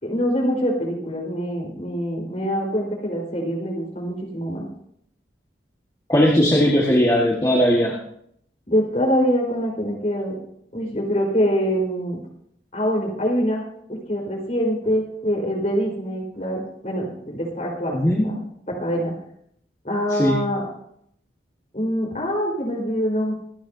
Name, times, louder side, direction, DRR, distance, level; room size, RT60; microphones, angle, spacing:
voice 1, 0.0-4.7 8.7-10.4 10.7-12.2 12.7-13.6 13.9-18.0 18.2-18.4 18.7-19.1 19.8-20.6 21.7-23.3, equal, 40° left, -1 dB, 4.4 m, -24 dB
voice 2, 6.1-8.0 17.9-18.2 20.1-20.4, equal, 20° left, -4 dB, 1.7 m, -18 dB
26.0 x 10.0 x 2.8 m, 0.68 s
head